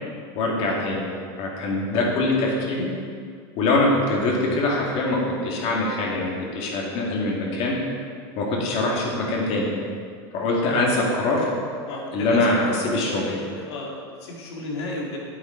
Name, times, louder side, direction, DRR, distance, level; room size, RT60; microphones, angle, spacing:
voice 1, 0.4-1.0 1.4-2.9 3.6-7.8 8.4-9.7 10.3-11.4 11.9-13.3, left 2 dB, 45° left, -2 dB, 2.2 m, -23 dB
voice 2, 10.6-11.2 11.9-15.2, left 2 dB, 85° left, -2 dB, 2.3 m, -34 dB
8.5 x 8.4 x 4.5 m, 2.1 s
supercardioid pair, 140°, 14 cm